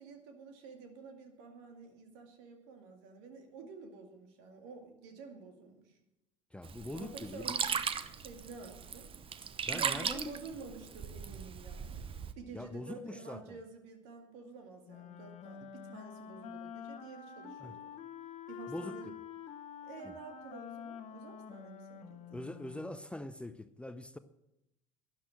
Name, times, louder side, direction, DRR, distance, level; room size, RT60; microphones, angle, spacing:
voice 1, 0.0-6.0 6.9-7.8 8.1-9.1 9.7-12.0 12.4-17.9 18.5-19.2 19.8-22.5, right 4 dB, 70° right, 2.2 m, -50 dB
voice 2, 6.5-7.5 9.6-10.4 12.5-13.6 17.6-17.7 18.7-19.1 20.0-20.1 22.3-24.2, left 1 dB, 5° left, 0.6 m, -43 dB
Sink (filling or washing), 6.6-12.3, right 7 dB, 35° right, 0.9 m, -38 dB
Wind instrument woodwind instrument, 14.8-23.0, left 7 dB, 45° left, 1.1 m, -47 dB
12.5 x 10.5 x 6.3 m
hypercardioid pair, 65°, 16 cm